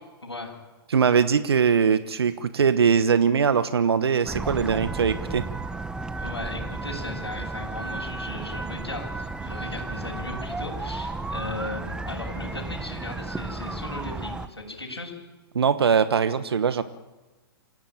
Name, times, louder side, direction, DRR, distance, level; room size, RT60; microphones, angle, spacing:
voice 1, 0.2-0.5 6.2-15.1, left 2 dB, 90° left, -1 dB, 7.5 m, -37 dB
voice 2, 0.9-5.4 15.5-16.8, right 6 dB, 75° right, 12 dB, 1.2 m, -21 dB
sound 1, 4.2-14.5, right 3 dB, 5° right, 1.3 m, -33 dB
28.0 x 17.0 x 9.0 m, 1.2 s
figure-of-eight pair, 115°, 13 cm